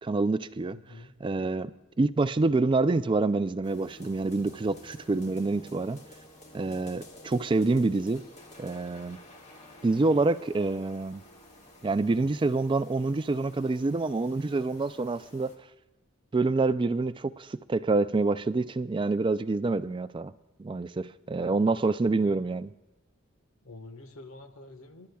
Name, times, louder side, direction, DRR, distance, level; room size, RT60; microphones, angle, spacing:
voice 1, 0.0-0.8 1.2-1.7 2.0-6.0 6.5-8.2 8.6-9.2 9.8-11.2 11.8-15.5 16.3-20.3 20.6-22.7, right 3 dB, 25° right, 14 dB, 0.3 m, -27 dB
voice 2, 0.7-1.1 21.4-21.7 22.0-22.4 23.6-25.1, left 2 dB, 80° left, 6 dB, 1.4 m, -47 dB
sound 1, 3.6-15.6, left 1 dB, 30° left, 1.7 m, -52 dB
28.5 x 11.5 x 2.3 m, 1.0 s
head